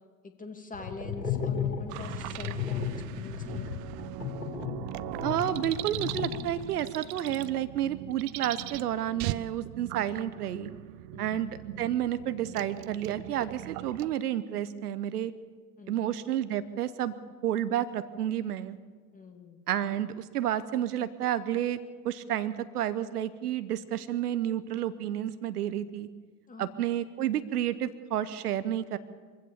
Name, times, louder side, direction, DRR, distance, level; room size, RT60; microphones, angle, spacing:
voice 1, 0.2-3.7 11.1-11.5 15.8-16.1 19.1-19.6 26.5-26.8, left 3 dB, 15° left, 5 dB, 2.5 m, -44 dB
sound 1, 0.7-6.8, left 7 dB, 90° left, 2.6 m, -34 dB
sound 2, 1.9-14.1, right 17 dB, 40° right, 0.7 m, -40 dB
voice 2, 5.2-10.7 11.2-15.3 15.9-17.1 17.4-18.8 19.7-21.8 22.0-26.1 26.6-29.0, right 11 dB, 70° right, 14 dB, 1.0 m, -30 dB
24.0 x 15.5 x 7.0 m, 1.5 s
figure-of-eight pair, 75°, 48 cm